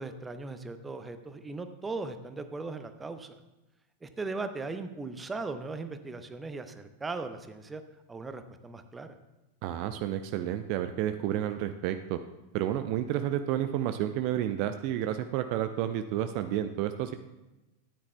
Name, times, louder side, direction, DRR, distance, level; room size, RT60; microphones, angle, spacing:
voice 1, 0.0-3.4 4.0-7.8 8.1-9.1, right 3 dB, 15° right, 9 dB, 0.7 m, -38 dB
voice 2, 9.6-12.2 12.5-17.1, right 11 dB, 45° right, 8 dB, 0.4 m, -30 dB
13.5 x 9.6 x 2.2 m, 1.0 s
figure-of-eight pair, 90°, 0 cm